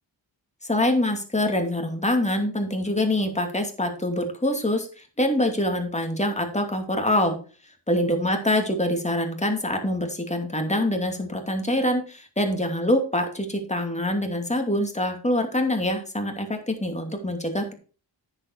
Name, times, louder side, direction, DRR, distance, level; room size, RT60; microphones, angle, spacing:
voice 1, 0.6-7.4 7.9-17.7, left 1 dB, 15° left, 4 dB, 2.6 m, -25 dB
9.7 x 7.3 x 4.6 m, 0.37 s
wide cardioid pair, 70°, 46 cm